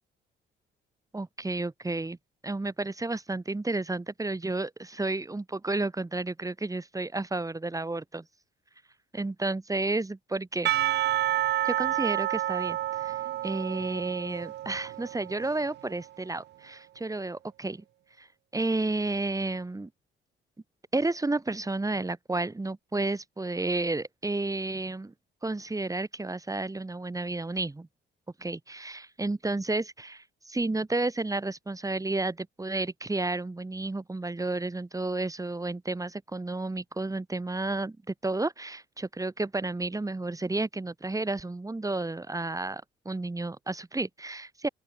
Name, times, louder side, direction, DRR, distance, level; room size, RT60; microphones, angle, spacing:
voice 1, 1.1-2.2 2.4-8.3 9.1-10.7 11.6-17.8 18.2-18.3 18.5-19.9 20.9-25.1 25.4-27.9 28.4-44.7, right 2 dB, 15° right, 3.5 m, -31 dB
Percussion / Church bell, 10.7-15.9, right 13 dB, 60° right, 0.4 m, -29 dB
open air
cardioid pair, 90°, 20 cm